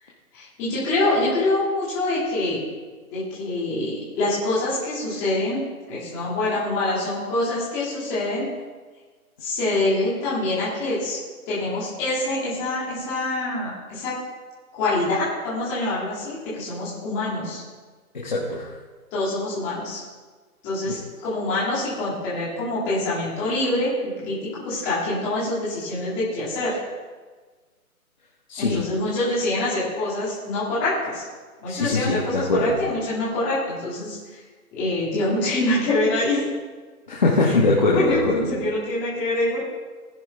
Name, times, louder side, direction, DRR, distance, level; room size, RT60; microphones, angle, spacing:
voice 1, 0.3-2.6 3.1-5.6 5.9-8.5 9.4-11.2 11.5-14.2 14.7-17.6 19.1-20.0 20.6-26.8 28.6-31.2 31.6-34.4 34.7-36.4 37.4-37.6 37.9-39.6, left 2 dB, 10° left, -9 dB, 2.1 m, -25 dB
voice 2, 18.1-18.7 20.8-21.0 28.5-28.9 31.7-32.8 37.1-38.5, left 3 dB, 30° left, -4 dB, 1.3 m, -22 dB
19.5 x 10.5 x 3.3 m, 1.4 s
hypercardioid pair, 180°, 44 cm